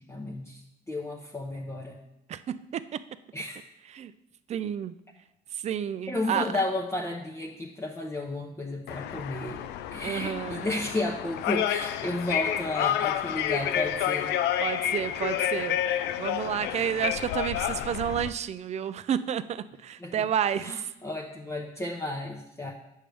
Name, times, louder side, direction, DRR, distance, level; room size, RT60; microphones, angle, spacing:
voice 1, 0.1-0.6 0.9-2.0 3.3-3.6 6.1-9.6 9.9-14.3 16.7-16.9 20.0-20.3 20.6-22.7, left 2 dB, 15° left, -1 dB, 0.8 m, -33 dB
voice 2, 2.3-3.0 3.9-4.1 4.5-4.9 5.6-6.5 10.0-10.7 14.6-20.8, right 9 dB, 40° right, 14 dB, 0.4 m, -30 dB
sound 1, 8.9-18.3, left 10 dB, 85° left, 0.4 m, -30 dB
8.6 x 6.4 x 3.4 m, 0.84 s
cardioid pair, 110°, 17 cm